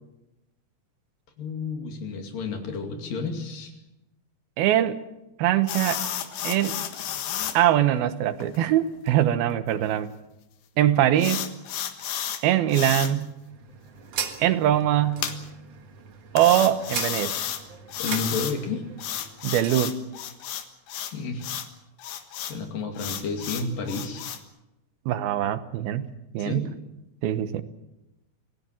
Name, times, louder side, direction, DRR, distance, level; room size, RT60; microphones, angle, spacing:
voice 1, 1.4-3.8 18.0-18.9 20.9-21.5 22.4-24.3 26.4-26.7, left 4 dB, 70° left, 5 dB, 4.2 m, -31 dB
voice 2, 4.6-5.0 5.4-6.0 6.4-6.8 7.5-10.1 10.8-11.4 12.4-13.3 14.4-15.3 16.3-17.5 19.4-20.0 25.1-26.1 26.3-26.7 27.2-27.6, right 12 dB, 90° right, 12 dB, 3.0 m, -22 dB
sound 1, 5.7-7.6 8.0-8.1 8.4-8.6 9.1-9.2 11.2-12.4 12.7-13.1 15.2-15.3 16.4-17.6 17.9-18.6 19.0-21.1 21.4-21.7 22.0-22.5 23.0-24.4, left 10 dB, 85° left, 3.4 m, -32 dB
sound 2, 13.3-19.9, right 7 dB, 50° right, 2.4 m, -38 dB
27.0 x 17.5 x 7.5 m, 0.94 s
omnidirectional pair, 4.2 m